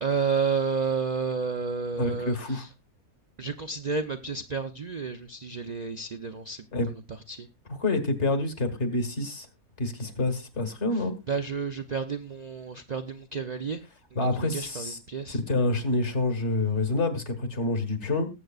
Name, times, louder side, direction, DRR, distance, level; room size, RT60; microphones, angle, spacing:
voice 1, 0.0-2.7 3.4-6.6 7.3-7.5 10.9-13.8 14.1-15.4, right 5 dB, 45° right, 6 dB, 0.5 m, -31 dB
voice 2, 2.0-2.6 6.7-6.9 7.7-9.5 9.8-11.1 14.2-15.0 15.3-18.3, left 2 dB, 55° left, 8 dB, 1.9 m, -27 dB
19.5 x 7.9 x 2.4 m, 0.26 s
omnidirectional pair, 1.5 m